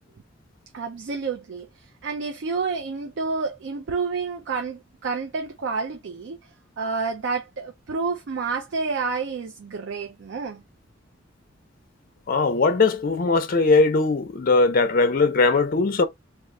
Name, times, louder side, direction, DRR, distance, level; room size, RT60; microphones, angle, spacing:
voice 1, 0.7-6.4 6.8-10.6, right 4 dB, 65° right, 0.4 m, -29 dB
voice 2, 12.3-16.0, left 3 dB, 45° left, 0.5 m, -20 dB
2.4 x 2.3 x 3.6 m
head